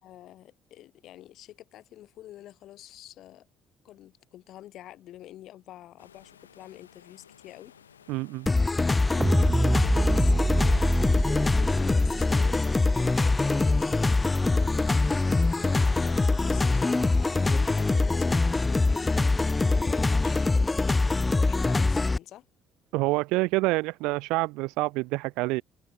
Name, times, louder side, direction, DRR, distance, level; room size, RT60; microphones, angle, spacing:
voice 1, 0.0-3.5 3.8-7.7 9.1-10.8 11.1-12.6 13.0-14.8 15.6-17.0 17.3-21.1 21.3-22.5, left 13 dB, 60° left, 3.8 m, -47 dB
sound 1, 6.0-17.5, left 8 dB, 90° left, 2.5 m, -55 dB
voice 2, 8.1-8.5 22.9-25.6, right 23 dB, 70° right, 0.7 m, -27 dB
sound 2, 8.5-22.2, left 3 dB, 20° left, 0.4 m, -23 dB
sound 3, 9.2-15.5, right 2 dB, 15° right, 0.8 m, -29 dB
hypercardioid pair, 50°, 0 cm